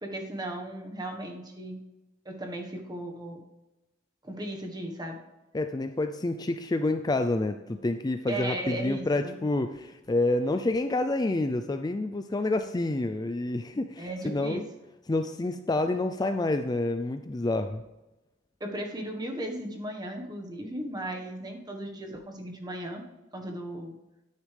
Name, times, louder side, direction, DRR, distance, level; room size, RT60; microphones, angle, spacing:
voice 1, 0.0-1.8 2.2-3.4 4.2-5.2 8.3-9.4 14.0-14.6 18.6-23.0 23.3-23.9, right 1 dB, 20° right, 3 dB, 1.4 m, -36 dB
voice 2, 5.5-14.6 15.1-17.8, left 2 dB, 20° left, 8 dB, 0.4 m, -28 dB
9.6 x 9.5 x 3.4 m, 1.0 s
head